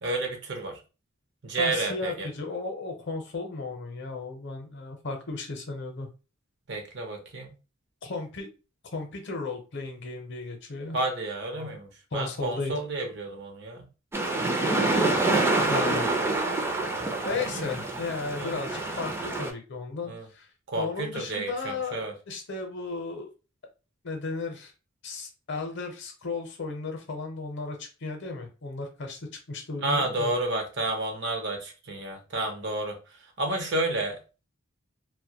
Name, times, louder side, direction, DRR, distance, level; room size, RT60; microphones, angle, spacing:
voice 1, 0.0-0.8 1.4-2.3 6.7-7.5 10.9-13.9 15.3-15.4 17.3-17.7 18.4-18.6 20.1-20.3 20.7-22.1 29.8-34.2, right 2 dB, 60° right, 4 dB, 0.7 m, -31 dB
voice 2, 1.5-6.1 8.0-8.5 8.9-11.0 11.5-11.7 12.1-12.7 15.1-16.1 17.2-20.5 20.8-23.3 24.0-24.7 25.0-30.3, left 3 dB, 60° left, 4 dB, 0.6 m, -35 dB
sound 1, 14.1-19.5, right 2 dB, 10° right, 0.3 m, -26 dB
2.1 x 2.1 x 2.7 m, 0.32 s
head